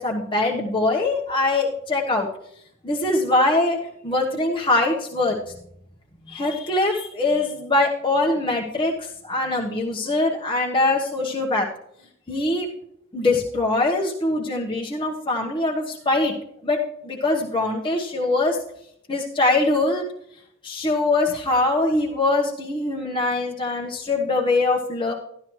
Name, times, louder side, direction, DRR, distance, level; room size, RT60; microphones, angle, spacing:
voice 1, 0.0-2.3 2.8-3.8 4.0-5.5 6.3-11.7 12.3-12.7 13.1-16.3 16.6-18.6 19.1-20.0 20.6-25.1, left 2 dB, 25° left, -2 dB, 1.2 m, -22 dB
13.5 x 11.5 x 3.1 m, 0.72 s
head